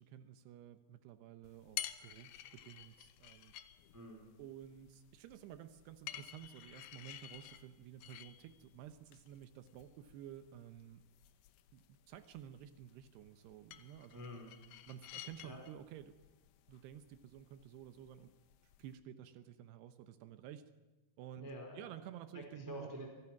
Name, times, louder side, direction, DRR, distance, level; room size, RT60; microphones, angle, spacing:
voice 1, 0.0-3.5 4.4-11.0 11.7-14.2 14.9-16.2 16.7-18.3 18.8-20.7 21.2-21.5 21.7-22.9, right 10 dB, 85° right, 10 dB, 3.1 m, -52 dB
sound 1, 1.4-18.9, left 13 dB, 75° left, 2.9 m, -53 dB
voice 2, 3.9-4.3 14.1-14.5 15.4-15.6 21.4-21.9 22.3-23.1, equal, 5° right, 1 dB, 3.7 m, -48 dB
29.5 x 24.0 x 6.0 m, 1.2 s
omnidirectional pair, 4.7 m